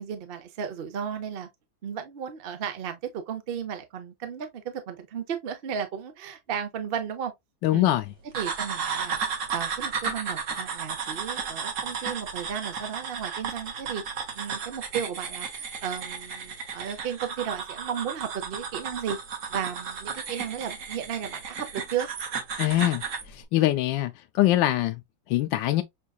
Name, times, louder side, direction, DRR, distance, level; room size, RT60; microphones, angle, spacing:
voice 1, 0.0-1.5 1.8-7.3 7.7-7.9 8.3-14.0 14.3-19.2 19.5-22.1, right 8 dB, 75° right, 0.5 m, -34 dB
voice 2, 7.6-8.0 22.6-23.0 23.3-25.0 25.3-25.8, left 14 dB, 75° left, 1.2 m, -23 dB
sound 1, 8.3-23.3, right 6 dB, 50° right, 1.1 m, -34 dB
6.4 x 2.5 x 2.3 m
omnidirectional pair, 2.2 m